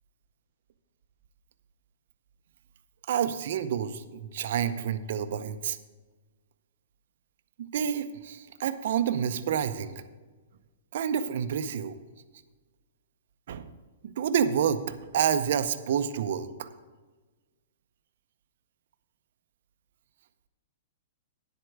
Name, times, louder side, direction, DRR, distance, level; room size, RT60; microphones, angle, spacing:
voice 1, 3.1-5.8 7.6-9.9 10.9-12.0 13.5-13.7 14.0-16.7, right 8 dB, 55° right, 11 dB, 0.6 m, -28 dB
10.0 x 7.9 x 4.7 m, 1.3 s
hypercardioid pair, 160°, 0 cm